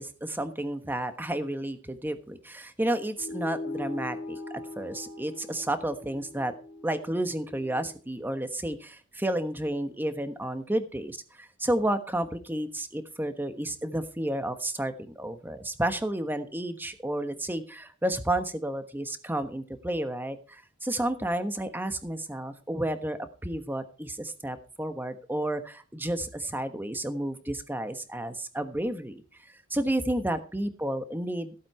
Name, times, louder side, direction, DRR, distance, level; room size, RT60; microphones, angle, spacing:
voice 1, 0.0-6.5 6.8-29.2 29.7-31.5, right 1 dB, 10° right, 9 dB, 1.2 m, -31 dB
sound 1, 3.2-8.0, left 2 dB, 80° left, 2.0 m, -40 dB
15.0 x 8.6 x 4.4 m, 0.36 s
head